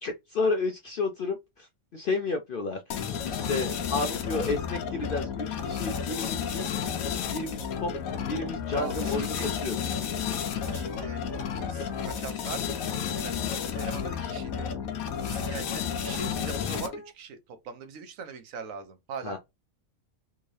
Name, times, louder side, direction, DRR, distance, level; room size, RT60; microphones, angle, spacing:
voice 1, 0.0-6.6 7.3-7.9 8.2-9.9 19.2-19.4, left 3 dB, 65° left, 0.5 m, -32 dB
sound 1, 2.9-17.1, left 7 dB, 85° left, 1.2 m, -32 dB
voice 2, 8.7-9.5 10.5-11.2 11.6-14.7 15.2-19.4, right 6 dB, 75° right, 1.1 m, -41 dB
3.5 x 2.7 x 3.1 m
omnidirectional pair, 1.5 m